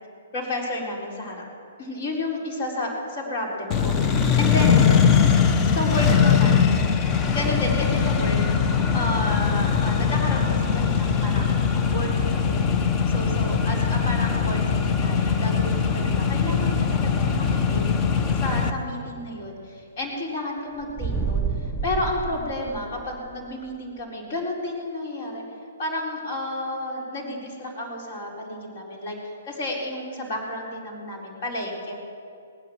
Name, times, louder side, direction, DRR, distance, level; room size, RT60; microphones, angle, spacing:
voice 1, 0.3-1.4 1.8-3.9 4.4-4.8 5.7-6.7 7.3-8.4 8.9-12.7 13.1-17.9 18.3-25.4 25.8-31.9, left 1 dB, 45° left, -2 dB, 4.2 m, -31 dB
Accelerating revving vroom, 3.7-18.7, left 6 dB, 25° left, 0.9 m, -21 dB
sound 1, 20.8-23.3, right 5 dB, 5° right, 0.7 m, -29 dB
19.5 x 9.6 x 7.3 m, 2.5 s
hypercardioid pair, 125°, 0 cm